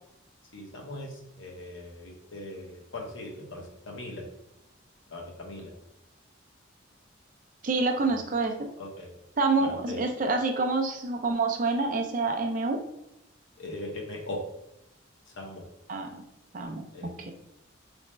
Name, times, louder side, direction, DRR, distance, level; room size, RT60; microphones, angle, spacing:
voice 1, 0.5-4.2 5.1-5.7 8.8-9.1 9.6-10.0 13.6-14.4 15.4-15.6 16.9-17.3, left 2 dB, 70° left, 0 dB, 0.8 m, -40 dB
voice 2, 7.6-8.5 9.4-12.8 15.9-16.2 16.5-16.8 17.2-17.3, right 3 dB, 40° right, 4 dB, 0.4 m, -27 dB
3.3 x 2.1 x 4.0 m, 0.84 s
head